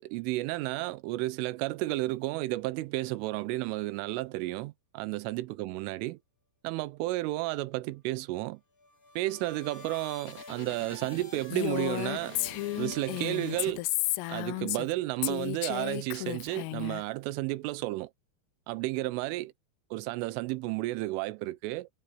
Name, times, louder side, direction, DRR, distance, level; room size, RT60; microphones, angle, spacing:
voice 1, 0.0-6.2 6.6-8.6 9.2-12.4 12.8-13.9 14.3-18.1 18.7-19.5 19.9-21.9, right 19 dB, 80° right, 3.3 m, -32 dB
sound 1, 8.8-14.4, left 3 dB, 30° left, 1.7 m, -46 dB
Female speech woman speaking, 11.5-14.9 15.2-17.0, left 20 dB, 90° left, 3.4 m, -33 dB
omnidirectional pair, 5.8 m